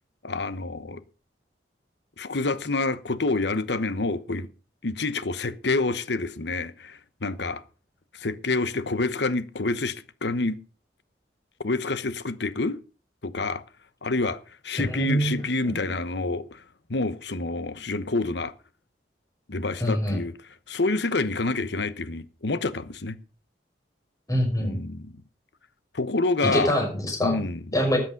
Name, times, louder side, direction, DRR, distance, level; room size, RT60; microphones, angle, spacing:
voice 1, 0.2-1.0 2.2-4.5 4.8-7.6 8.1-10.6 11.6-12.8 13.2-13.6 14.0-16.6 16.9-18.5 19.5-20.3 20.7-23.2 24.6-25.1 25.9-26.7 27.2-27.6, left 3 dB, 70° left, 1.0 m, -28 dB
voice 2, 14.8-15.4 15.6-15.8 19.8-20.2 24.3-24.8 26.5-27.4 27.7-28.0, equal, 20° left, 5.8 m, -25 dB
13.5 x 9.0 x 5.3 m
head